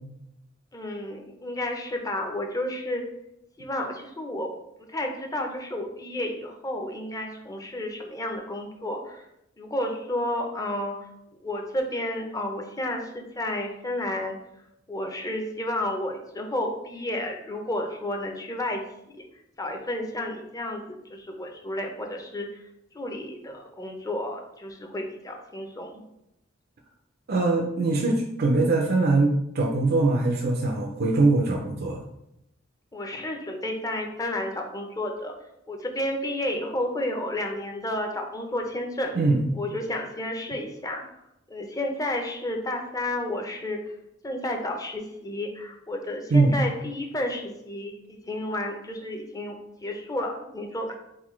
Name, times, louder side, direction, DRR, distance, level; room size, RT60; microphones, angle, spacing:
voice 1, 0.7-3.0 3.6-4.5 4.9-9.2 9.6-11.0 11.4-14.4 14.9-18.8 19.1-19.2 19.6-22.6 22.9-26.0 32.9-35.3 35.7-39.1 39.5-41.0 41.5-43.9 44.2-50.9, left 1 dB, 20° left, 3 dB, 0.6 m, -31 dB
voice 2, 27.3-32.0 39.2-39.4 46.3-46.6, right 3 dB, 50° right, 1 dB, 0.5 m, -22 dB
3.9 x 3.8 x 3.1 m, 0.83 s
head